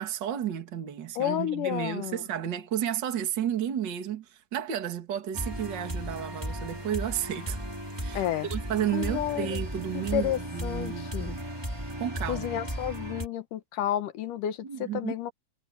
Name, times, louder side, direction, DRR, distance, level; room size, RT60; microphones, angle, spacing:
voice 1, 0.0-7.6 8.0-8.2 8.5-11.4 12.0-12.5 14.6-15.1, right 10 dB, 40° right, 2.3 m, -32 dB
voice 2, 1.2-2.3 8.1-8.5 8.9-9.6 9.9-11.3 12.3-15.3, left 12 dB, 80° left, 2.8 m, -31 dB
sound 1, 5.3-13.3, equal, 5° right, 3.8 m, -35 dB
omnidirectional pair, 3.7 m